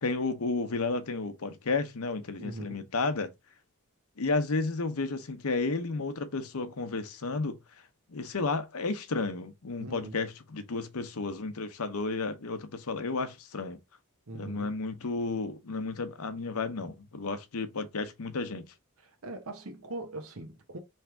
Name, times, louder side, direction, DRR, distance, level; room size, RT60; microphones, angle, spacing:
voice 1, 0.0-3.3 4.2-7.6 8.1-13.8 14.3-18.6, left 3 dB, 80° left, 0.8 m, -32 dB
voice 2, 2.4-2.9 9.8-10.2 14.3-14.7 19.0-20.8, right 2 dB, 75° right, 1.0 m, -41 dB
3.4 x 3.2 x 4.4 m
head